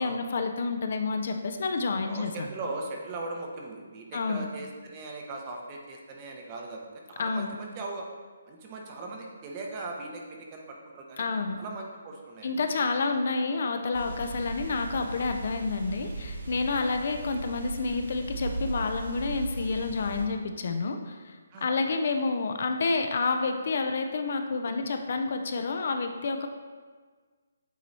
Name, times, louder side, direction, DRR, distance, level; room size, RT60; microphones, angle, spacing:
voice 1, 0.0-2.5 4.1-4.5 7.2-7.6 11.2-11.6 12.4-26.5, left 4 dB, 50° left, 6 dB, 0.4 m, -29 dB
voice 2, 2.1-8.1 8.4-10.2 10.5-11.2 11.6-12.6 16.7-17.0 21.5-21.9, right 2 dB, 20° right, 0 dB, 0.7 m, -39 dB
sound 1, 13.9-20.2, right 3 dB, 70° right, 1.5 m, -38 dB
8.2 x 3.0 x 4.0 m, 1.5 s
hypercardioid pair, 170°, 0 cm